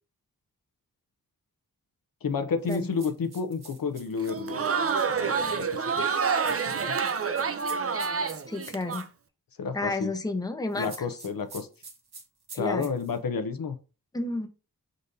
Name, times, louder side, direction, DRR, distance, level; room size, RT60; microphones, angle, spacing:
voice 1, 2.2-4.6 5.2-6.2 6.5-7.0 9.6-10.1 10.7-11.7 12.6-13.8, left 5 dB, 65° left, 7 dB, 0.7 m, -31 dB
sound 1, 2.6-4.5 6.4-9.1 10.7-13.2, right 3 dB, 90° right, 1.4 m, -47 dB
Crowd, 4.2-9.0, right 5 dB, 40° right, 0.5 m, -28 dB
voice 2, 8.5-9.1 9.7-10.9 12.5-12.9 14.1-14.5, left 2 dB, 10° left, 7 dB, 0.7 m, -31 dB
5.1 x 3.9 x 2.7 m, 0.33 s
cardioid pair, 55°, 37 cm